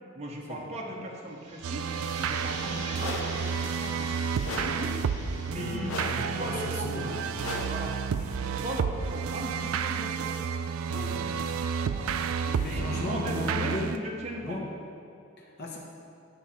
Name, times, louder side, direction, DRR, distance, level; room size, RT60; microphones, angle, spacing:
voice 1, 0.1-7.2 7.6-10.3 11.9-12.1 12.4-14.6, right 1 dB, 30° right, -2 dB, 0.9 m, -38 dB
sound 1, 1.3-7.0, right 3 dB, 60° right, 1.1 m, -42 dB
sound 2, 1.6-14.0, right 6 dB, 80° right, 0.3 m, -31 dB
sound 3, 3.0-3.4 4.4-4.9 5.9-6.3 7.4-7.9, left 2 dB, 75° left, 0.8 m, -36 dB
voice 2, 5.5-7.4 10.9-11.4 12.6-14.0 14.4-14.6 15.4-15.8, left 1 dB, 55° left, -2 dB, 1.1 m, -36 dB
9.2 x 5.5 x 4.3 m, 2.5 s
head